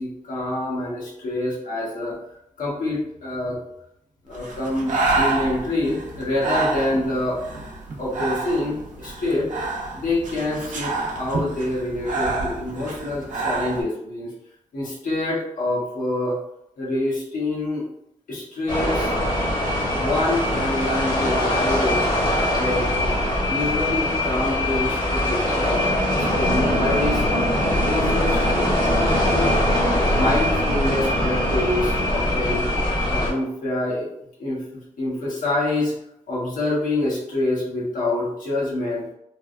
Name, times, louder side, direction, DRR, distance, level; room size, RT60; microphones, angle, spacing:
voice 1, 0.0-2.2 2.6-3.6 4.2-7.4 8.0-9.5 9.9-14.3 14.7-16.4 16.8-17.9 18.3-19.2 19.9-22.0 22.5-23.1 23.5-27.2 27.6-29.6 30.0-32.7 33.0-34.1 34.4-34.6 35.0-35.9 36.3-39.1, left 2 dB, 80° left, -5 dB, 1.0 m, -26 dB
Breathing, 4.3-13.8, right 3 dB, 70° right, 0.7 m, -28 dB
sound 1, 18.7-33.3, left 1 dB, 35° left, 0.9 m, -22 dB
3.4 x 2.1 x 2.4 m, 0.80 s
cardioid pair, 85°, 14 cm